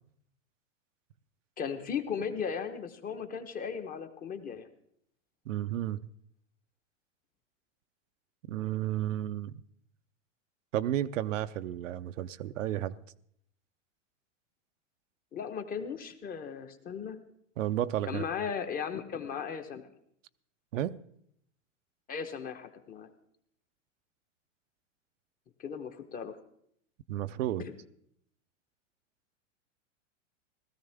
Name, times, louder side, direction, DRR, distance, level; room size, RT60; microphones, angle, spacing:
voice 1, 1.6-4.7 15.3-17.2 18.1-19.8 22.1-23.1 25.6-26.4 27.6-27.7, left 7 dB, 20° left, 1.0 m, -36 dB
voice 2, 5.5-6.0 8.5-9.6 10.7-12.9 17.6-18.2 20.7-21.0 27.1-27.7, right 12 dB, 80° right, 0.6 m, -32 dB
17.0 x 14.0 x 3.5 m
hypercardioid pair, 125°, 38 cm